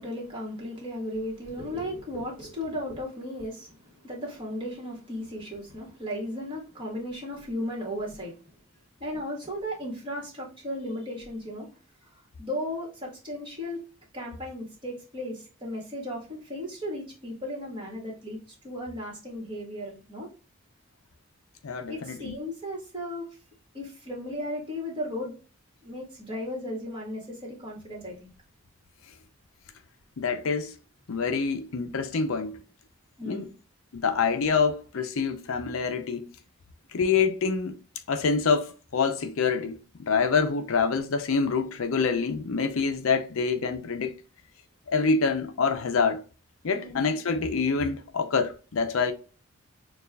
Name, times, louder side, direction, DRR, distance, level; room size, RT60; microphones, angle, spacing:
voice 1, 0.0-8.4 9.0-11.7 12.4-13.8 14.1-18.4 18.6-20.3 21.9-23.3 23.7-25.3 25.8-28.3 33.2-33.5 46.7-47.1, left 1 dB, 20° right, 1.6 m, -35 dB
voice 2, 21.6-22.3 30.2-30.8 31.1-32.6 33.2-33.5 33.9-36.3 36.9-37.8 38.1-39.8 40.1-44.2 44.9-46.2 46.6-49.1, left 5 dB, 70° left, 0.5 m, -26 dB
6.6 x 2.4 x 2.3 m
head